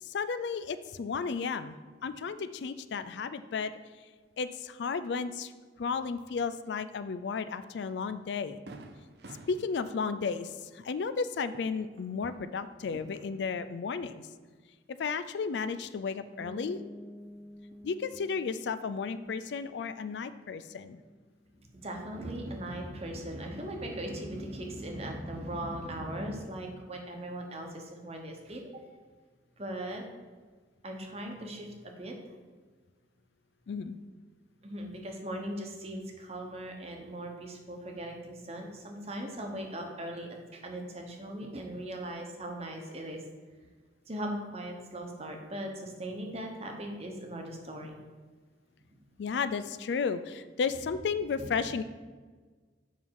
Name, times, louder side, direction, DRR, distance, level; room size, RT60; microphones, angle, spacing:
voice 1, 0.1-1.8 2.0-3.7 4.4-5.5 5.8-8.6 9.5-10.5 10.8-14.2 15.0-16.8 17.8-21.0 33.7-34.0 49.2-51.8, left 5 dB, 70° left, 12 dB, 0.4 m, -33 dB
Fireworks, 7.6-7.8 8.2-8.3 8.7-12.4 12.7-13.6, right 2 dB, 60° right, 0.6 m, -52 dB
sound 1, 16.4-22.0, left 1 dB, 20° left, 0.8 m, -51 dB
voice 2, 21.6-28.8 29.6-30.0 30.8-32.2 34.6-43.2 44.1-47.9 51.4-51.5, right 1 dB, 35° right, 2 dB, 1.1 m, -39 dB
7.4 x 5.4 x 4.7 m, 1.4 s
head